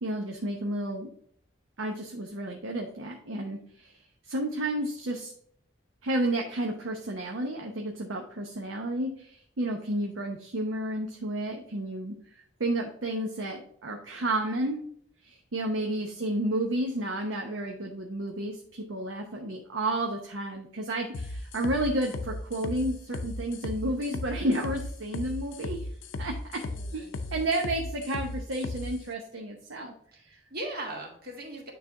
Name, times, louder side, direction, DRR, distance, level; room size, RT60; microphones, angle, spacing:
voice 1, 0.0-1.1 1.8-5.3 6.0-14.8 15.2-25.9 26.2-26.6 26.9-30.4, right 1 dB, 85° right, 1 dB, 0.8 m, -31 dB
sound 1, 21.1-28.9, left 2 dB, 85° left, 0.5 m, -36 dB
voice 2, 26.5-27.5 30.5-31.7, right 1 dB, 55° right, 1 dB, 1.6 m, -39 dB
9.1 x 3.4 x 3.5 m, 0.62 s
head